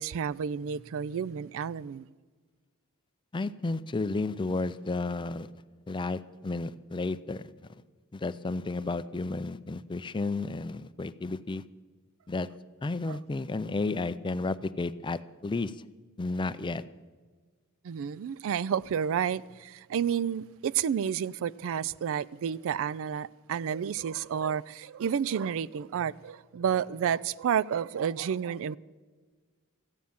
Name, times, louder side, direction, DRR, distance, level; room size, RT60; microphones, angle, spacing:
voice 1, 0.0-2.1 13.1-13.2 17.8-28.8, right 8 dB, 65° right, 0.3 m, -30 dB
voice 2, 3.3-5.5 5.9-7.4 8.1-11.6 12.3-12.5 12.8-15.7 16.2-16.8, left 3 dB, 20° left, 0.4 m, -32 dB
14.5 x 9.5 x 7.0 m
head